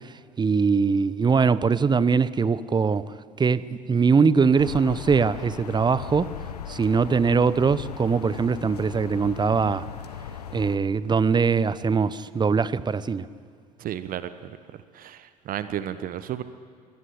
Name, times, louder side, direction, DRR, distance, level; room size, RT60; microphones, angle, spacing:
voice 1, 0.4-3.1 3.4-6.3 6.7-9.8 10.5-13.3, right 5 dB, 20° right, 0.9 m, -22 dB
sound 1, 4.6-10.8, left 8 dB, 80° left, 1.0 m, -38 dB
voice 2, 13.8-14.5 14.9-16.4, right 11 dB, 45° right, 1.1 m, -33 dB
23.5 x 18.0 x 10.0 m
figure-of-eight pair, 65°, 20 cm